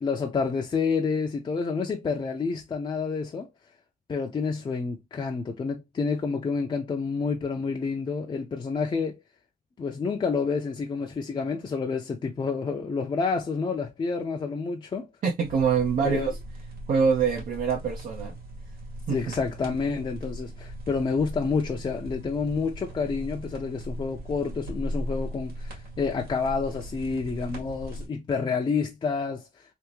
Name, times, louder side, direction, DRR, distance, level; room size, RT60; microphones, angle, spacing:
voice 1, 0.0-3.5 4.1-9.2 9.8-15.1 16.0-16.3 19.1-29.5, left 5 dB, 35° left, 0.6 m, -29 dB
voice 2, 15.2-16.3 16.9-18.4 19.1-19.2, right 6 dB, 65° right, 0.9 m, -24 dB
sound 1, 15.4-28.1, equal, 85° right, 2.0 m, -38 dB
3.5 x 2.6 x 3.0 m
cardioid pair, 120°, 15 cm